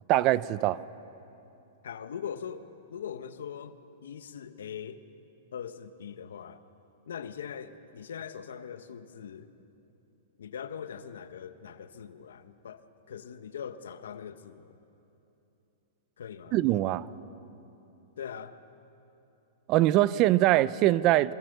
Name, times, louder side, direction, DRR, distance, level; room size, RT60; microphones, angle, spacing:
voice 1, 0.1-0.8 16.5-17.1 19.7-21.3, right 15 dB, 35° right, 18 dB, 0.6 m, -23 dB
voice 2, 1.8-3.8 4.0-5.0 5.5-6.6 7.1-9.5 10.4-14.8 16.2-16.6 18.2-18.5, left 8 dB, 85° left, 10 dB, 1.3 m, -41 dB
26.0 x 24.0 x 6.8 m, 2.9 s
hypercardioid pair, 145°, 0 cm